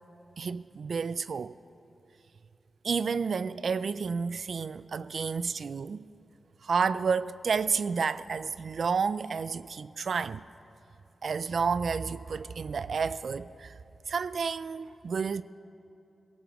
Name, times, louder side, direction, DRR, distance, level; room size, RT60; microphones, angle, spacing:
voice 1, 0.4-1.6 2.8-6.1 6.6-10.4 11.2-13.7 14.1-15.4, right 5 dB, 70° right, 0.3 m, -30 dB
22.5 x 17.0 x 3.1 m
wide cardioid pair, 90°, 0 cm